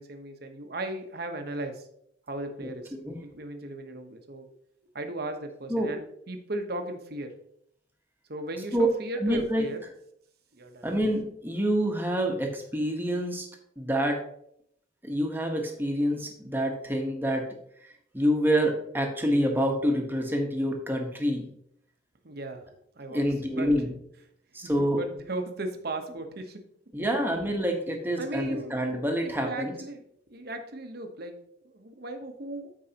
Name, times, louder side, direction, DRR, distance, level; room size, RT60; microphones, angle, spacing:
voice 1, 0.0-1.9 2.3-2.9 3.2-4.5 4.9-7.3 8.3-9.8 10.5-10.9 22.2-22.7 23.0-23.7 24.8-26.6 28.2-28.8 29.2-31.4 31.6-32.7, right 2 dB, 55° right, 5 dB, 1.0 m, -36 dB
voice 2, 9.2-9.6 10.8-13.5 13.8-14.2 15.0-17.5 17.8-21.5 23.1-23.9 24.5-25.0 26.9-29.7, equal, 10° right, 2 dB, 1.1 m, -27 dB
14.0 x 4.7 x 2.9 m, 0.70 s
head